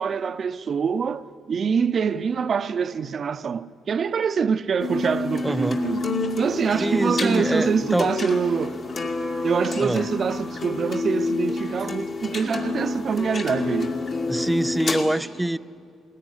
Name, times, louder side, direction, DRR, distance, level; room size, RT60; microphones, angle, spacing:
voice 1, 0.0-6.0 6.4-9.1 9.4-13.9, right 6 dB, 50° right, 0.6 m, -25 dB
sound 1, 4.8-15.0, left 3 dB, 50° left, 2.4 m, -28 dB
voice 2, 5.4-5.8 6.8-8.1 9.8-10.0 14.3-15.6, right 1 dB, 10° right, 0.4 m, -25 dB
20.0 x 16.5 x 9.9 m
cardioid pair, 90°, 0 cm